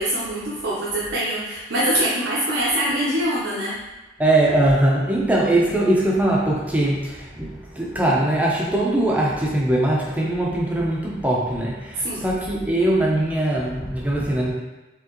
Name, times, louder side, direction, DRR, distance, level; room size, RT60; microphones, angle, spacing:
voice 1, 0.0-3.7 12.0-12.3, right 1 dB, 80° right, -8 dB, 0.8 m, -24 dB
voice 2, 4.2-14.5, right 1 dB, 10° right, -4 dB, 0.6 m, -21 dB
4.6 x 3.5 x 3.0 m, 1.1 s
head